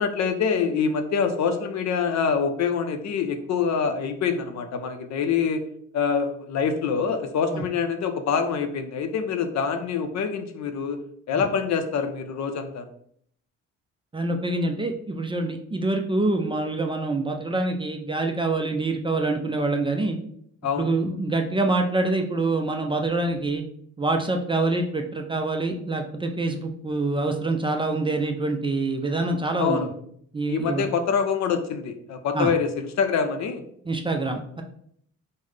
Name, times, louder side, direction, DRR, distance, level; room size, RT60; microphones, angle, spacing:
voice 1, 0.0-5.6 5.9-11.0 11.3-12.9 20.6-20.9 29.6-29.9 30.5-33.6, left 6 dB, 65° left, 7 dB, 0.5 m, -25 dB
voice 2, 14.1-20.2 20.8-23.6 24.0-29.9 30.3-30.8 32.3-32.5 33.9-34.6, right 2 dB, 15° right, 4 dB, 0.3 m, -25 dB
3.8 x 2.1 x 3.2 m, 0.66 s
cardioid pair, 90°, 30 cm